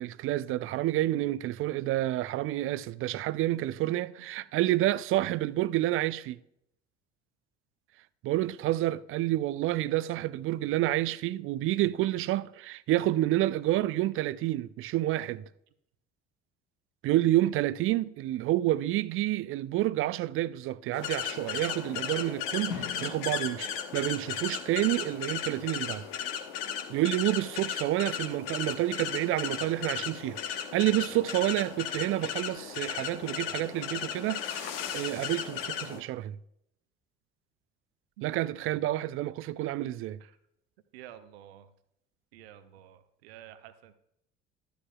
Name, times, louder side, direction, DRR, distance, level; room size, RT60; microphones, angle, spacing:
voice 1, 0.0-6.4 8.2-15.4 17.0-26.1 26.9-36.4 38.2-40.2, right 15 dB, 40° right, 0.4 m, -29 dB
sound 1, 20.9-36.0, left 8 dB, 65° left, 1.1 m, -35 dB
voice 2, 40.9-41.7 42.3-44.0, right 11 dB, 70° right, 0.7 m, -51 dB
12.5 x 10.0 x 2.3 m
figure-of-eight pair, 60°, 32 cm